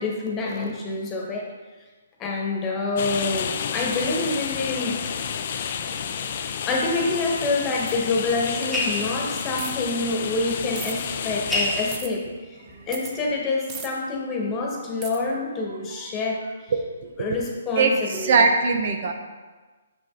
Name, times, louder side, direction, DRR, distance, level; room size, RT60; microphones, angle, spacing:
voice 1, 0.0-1.5 2.2-5.0 6.6-12.3 12.9-16.4 17.2-18.4, left 3 dB, 20° left, 0 dB, 1.4 m, -27 dB
sound 1, 3.0-12.0, left 7 dB, 50° left, 0.5 m, -30 dB
sound 2, 5.6-13.4, left 1 dB, ahead, 1.5 m, -35 dB
sound 3, 9.6-9.9 10.8-10.9 11.9-12.1 12.9-13.1 13.7-13.9 15.0-15.2, right 6 dB, 25° right, 0.8 m, -36 dB
voice 2, 17.8-19.1, right 4 dB, 55° right, 5 dB, 0.9 m, -20 dB
7.0 x 6.1 x 3.9 m, 1.3 s
hypercardioid pair, 145°, 0 cm